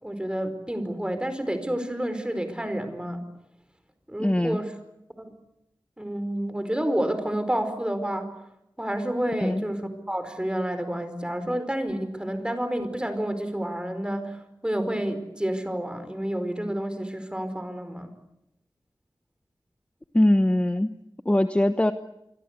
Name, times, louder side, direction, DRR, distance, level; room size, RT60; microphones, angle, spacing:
voice 1, 0.0-3.2 4.1-4.7 5.2-5.3 6.0-8.3 8.8-14.4 14.6-18.1, right 1 dB, 10° right, 9 dB, 4.7 m, -29 dB
voice 2, 4.2-4.6 9.4-9.6 20.1-20.9 21.2-21.9, left 1 dB, 15° left, 9 dB, 1.1 m, -21 dB
26.5 x 23.5 x 8.2 m, 0.82 s
wide cardioid pair, 85°, 8 cm